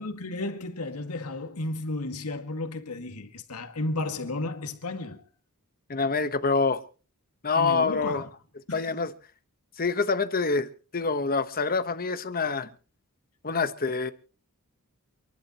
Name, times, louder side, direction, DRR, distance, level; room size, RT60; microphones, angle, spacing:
voice 1, 0.0-5.3 7.5-8.2 8.7-8.9, left 2 dB, 85° left, 2.0 m, -33 dB
voice 2, 5.9-6.8 7.4-8.3 8.7-9.1 9.8-10.7 10.9-12.7 13.4-14.1, left 4 dB, 40° left, 1.2 m, -26 dB
28.5 x 11.5 x 3.0 m
head